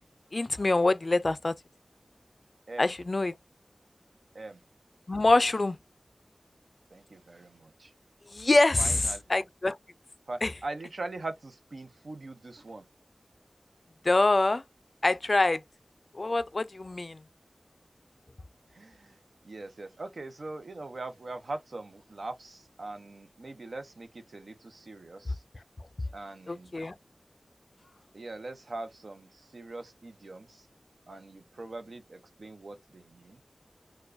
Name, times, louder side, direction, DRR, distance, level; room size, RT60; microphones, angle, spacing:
voice 1, 0.3-1.5 2.8-3.3 5.1-5.8 8.3-9.8 10.4-10.5 14.0-14.6 15.0-15.6 16.1-17.2 26.5-26.9, left 2 dB, 55° left, 0.3 m, -25 dB
voice 2, 6.9-7.9 8.8-9.3 10.3-12.8 18.7-19.2 19.4-25.4 26.1-26.8 28.1-30.7 31.1-33.4, right 2 dB, 75° right, 0.6 m, -42 dB
4.6 x 2.2 x 2.5 m
wide cardioid pair, 55°, 0 cm